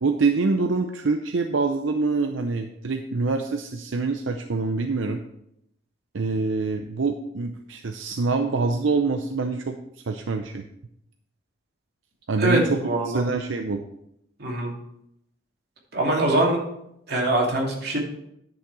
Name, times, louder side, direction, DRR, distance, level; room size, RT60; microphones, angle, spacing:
voice 1, 0.0-5.2 6.1-9.8 10.1-10.7 12.3-13.8, right 4 dB, 85° right, 4 dB, 0.6 m, -25 dB
voice 2, 12.4-13.2 14.4-14.7 15.9-16.6 17.1-18.0, right 1 dB, 55° right, -2 dB, 2.6 m, -23 dB
10.5 x 6.5 x 4.7 m, 0.79 s
head